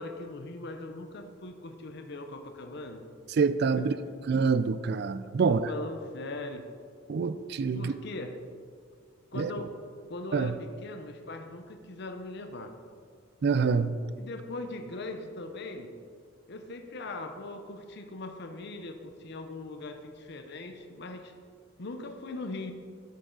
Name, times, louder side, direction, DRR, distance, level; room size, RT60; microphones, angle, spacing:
voice 1, 0.0-3.1 3.8-4.1 5.4-6.7 7.7-8.4 9.3-9.7 10.1-12.7 14.2-15.9 16.5-21.3 21.8-22.7, left 2 dB, 55° left, 6 dB, 0.7 m, -40 dB
voice 2, 3.4-3.9 4.3-5.7 7.1-7.9 9.4-9.5 10.3-10.5 13.4-13.9, right 5 dB, 55° right, 13 dB, 0.4 m, -26 dB
12.5 x 6.3 x 3.9 m, 2.1 s
head